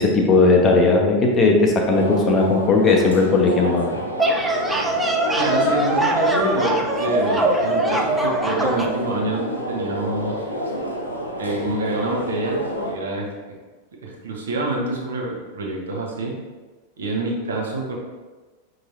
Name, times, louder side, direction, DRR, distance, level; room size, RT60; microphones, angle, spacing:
voice 1, 0.0-4.0, left 3 dB, 25° left, 1 dB, 0.7 m, -17 dB
sound 1, 1.9-12.9, equal, 85° left, 0.6 m, -28 dB
sound 2, 4.2-9.0, right 1 dB, 5° right, 0.5 m, -22 dB
voice 2, 5.3-10.4 11.4-13.3 14.0-16.3 17.0-18.0, right 2 dB, 65° right, -1 dB, 0.9 m, -27 dB
5.6 x 2.9 x 2.8 m, 1.3 s
figure-of-eight pair, 90°, 0 cm